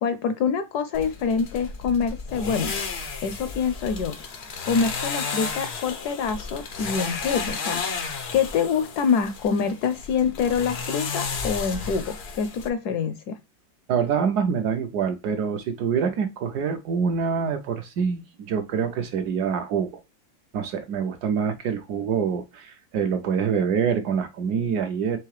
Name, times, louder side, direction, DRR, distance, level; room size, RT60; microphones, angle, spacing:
voice 1, 0.0-2.7 3.2-4.2 4.6-7.8 8.3-13.4, left 6 dB, 75° left, 0.9 m, -25 dB
sound 1, 0.9-12.7, left 5 dB, 90° left, 0.5 m, -33 dB
voice 2, 13.9-19.9 20.5-25.2, right 6 dB, 70° right, 1.0 m, -25 dB
4.6 x 3.4 x 3.1 m
omnidirectional pair, 2.0 m